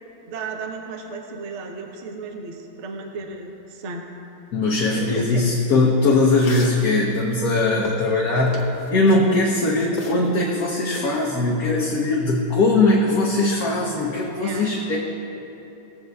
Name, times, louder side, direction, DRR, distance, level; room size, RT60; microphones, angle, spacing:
voice 1, 0.2-4.0 4.9-5.5 14.4-14.6, right 3 dB, 50° right, 2 dB, 0.9 m, -33 dB
voice 2, 4.5-15.0, left 2 dB, 60° left, -3 dB, 1.1 m, -20 dB
sound 1, 6.1-6.8 7.4-9.2 9.8-10.4 10.6-11.2, left 6 dB, 90° left, 1.8 m, -36 dB
18.0 x 7.8 x 2.3 m, 3.0 s
omnidirectional pair, 2.2 m